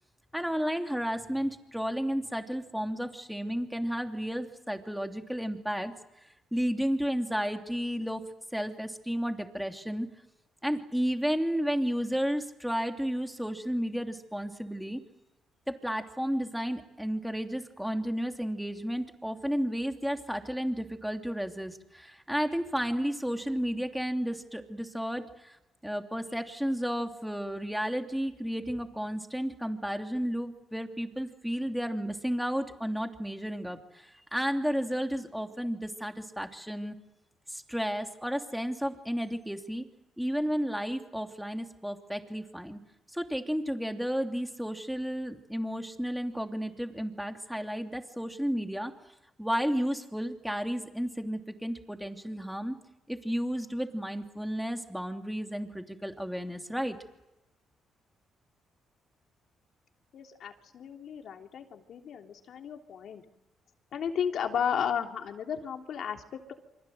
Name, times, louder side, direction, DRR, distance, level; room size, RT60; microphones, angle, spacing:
voice 1, 0.3-5.9 6.5-8.2 8.5-10.1 10.6-15.0 15.7-25.6 25.8-37.0 37.5-39.9 40.2-42.8 43.1-48.9 49.4-52.8 53.1-57.0, equal, ahead, 4 dB, 3.0 m, -32 dB
voice 2, 60.1-63.2 63.9-66.5, left 8 dB, 65° left, 4 dB, 3.2 m, -34 dB
28.5 x 25.5 x 7.9 m, 0.95 s
cardioid pair, 90°, 0 cm